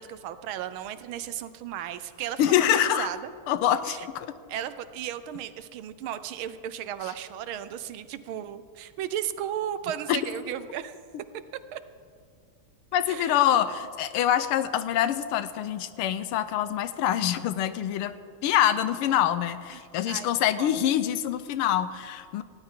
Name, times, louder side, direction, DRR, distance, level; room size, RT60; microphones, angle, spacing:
voice 1, 0.0-3.2 3.8-4.1 4.5-10.9 11.7-11.8 13.1-13.4 19.7-20.8, right 10 dB, 75° right, 13 dB, 1.4 m, -35 dB
voice 2, 2.4-3.1 3.5-4.3 10.1-10.2 12.9-18.1 18.4-22.4, left 11 dB, 90° left, 13 dB, 1.6 m, -25 dB
19.0 x 16.0 x 3.7 m, 2.2 s
omnidirectional pair, 2.4 m